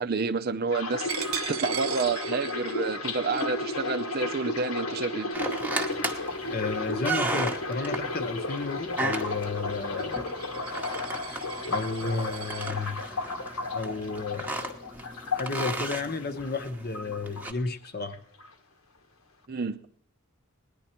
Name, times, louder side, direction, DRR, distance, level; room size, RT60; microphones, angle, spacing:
voice 1, 0.0-5.3 19.5-19.8, right 4 dB, 45° right, 10 dB, 0.5 m, -29 dB
sound 1, 0.7-16.7 16.9-17.9 18.1-18.5, left 2 dB, 90° left, 1.5 m, -33 dB
Coin (dropping), 1.1-6.5 7.0-7.2 7.6-12.7, right 9 dB, 80° right, 0.9 m, -41 dB
sound 2, 5.3-17.5, right 2 dB, 10° right, 0.9 m, -36 dB
voice 2, 6.5-10.3 11.2-11.4 11.7-13.3 13.7-14.8 15.3-18.2, left 3 dB, 45° left, 8 dB, 0.9 m, -32 dB
19.0 x 10.0 x 4.4 m, 0.66 s
head